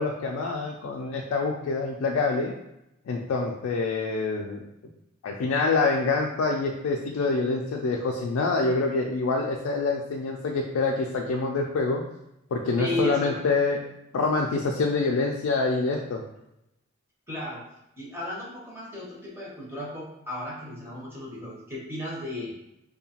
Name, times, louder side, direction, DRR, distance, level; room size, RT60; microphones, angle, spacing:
voice 1, 0.0-2.5 3.1-4.6 5.2-12.0 12.5-13.8 14.1-16.2, left 3 dB, 70° left, 0 dB, 0.3 m, -26 dB
voice 2, 12.8-13.4 17.3-17.6 18.0-22.5, left 1 dB, 10° right, -5 dB, 0.7 m, -34 dB
2.7 x 2.2 x 2.8 m, 0.85 s
head